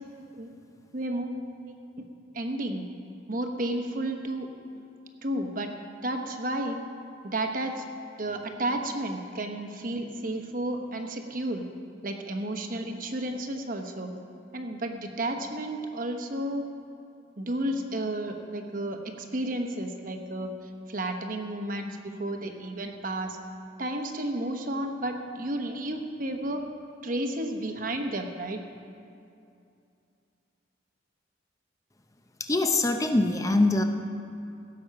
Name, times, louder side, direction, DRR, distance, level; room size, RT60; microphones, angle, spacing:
voice 1, 0.2-0.5 0.9-1.7 2.3-2.9 3.3-4.8 5.2-5.8 6.0-6.8 7.2-7.8 8.2-11.7 12.0-14.1 14.5-16.7 17.4-20.5 20.9-23.4 23.8-26.7 27.0-28.6, right 1 dB, 45° right, 5 dB, 1.0 m, -32 dB
voice 2, 32.4-33.8, left 2 dB, 15° left, 6 dB, 0.5 m, -23 dB
16.5 x 7.9 x 5.8 m, 2.5 s
head